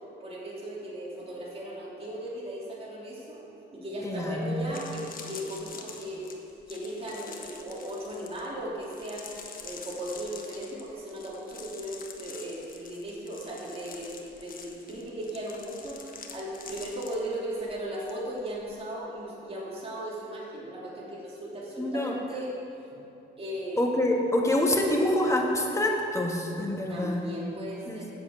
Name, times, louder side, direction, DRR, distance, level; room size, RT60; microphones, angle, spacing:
voice 1, 0.2-3.4 3.7-6.3 6.7-9.3 9.6-22.5 23.4-23.9 26.9-28.1, right 1 dB, 30° right, -5 dB, 2.9 m, -37 dB
voice 2, 4.0-4.4 21.8-22.1 23.8-27.3 27.9-28.0, left 1 dB, 15° left, 0 dB, 1.7 m, -26 dB
sound 1, 4.1-4.2 4.6-18.1 18.4-18.7, left 5 dB, 45° left, 1.2 m, -46 dB
8.1 x 7.7 x 7.5 m, 2.8 s
cardioid pair, 90°, 20 cm